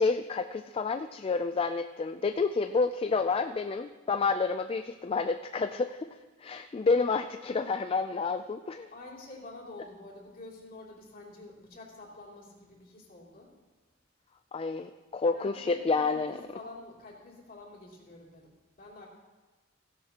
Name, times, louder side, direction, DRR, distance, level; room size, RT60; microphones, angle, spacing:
voice 1, 0.0-6.1 6.4-8.9 14.5-16.3, left 4 dB, 30° left, 9 dB, 0.3 m, -29 dB
voice 2, 8.9-13.5 15.3-19.1, left 2 dB, 45° left, -4 dB, 2.9 m, -48 dB
16.0 x 11.5 x 2.9 m, 1.2 s
head